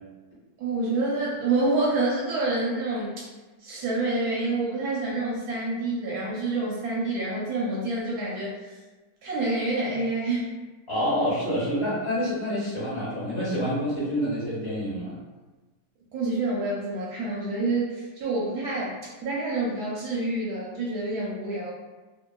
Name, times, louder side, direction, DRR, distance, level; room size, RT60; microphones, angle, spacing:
voice 1, 0.6-3.3 3.6-8.8 9.2-10.5 16.1-21.7, right 2 dB, 70° right, -5 dB, 1.0 m, -27 dB
voice 2, 10.9-15.1, equal, 45° left, -10 dB, 1.0 m, -27 dB
2.8 x 2.4 x 2.2 m, 1.2 s
omnidirectional pair, 1.9 m